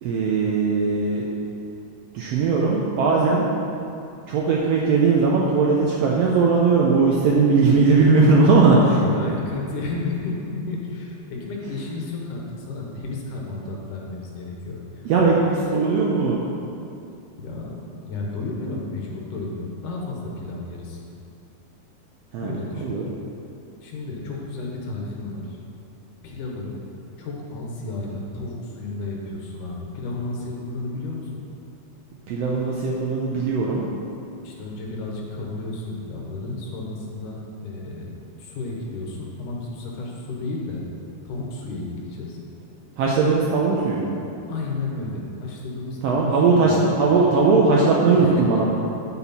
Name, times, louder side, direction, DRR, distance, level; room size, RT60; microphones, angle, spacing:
voice 1, 0.0-1.2 2.1-3.5 4.3-9.0 15.0-16.4 22.3-23.0 32.3-33.8 43.0-44.2 46.0-48.6, right 4 dB, 75° right, -3 dB, 1.5 m, -19 dB
voice 2, 8.7-15.4 17.4-17.8 18.0-21.0 22.4-22.9 23.8-25.6 26.2-26.8 27.2-31.4 34.4-38.1 38.4-40.8 41.2-42.4 44.5-47.0 48.1-48.6, left 3 dB, 75° left, -2 dB, 2.7 m, -32 dB
8.1 x 7.7 x 4.3 m, 2.7 s
omnidirectional pair, 3.6 m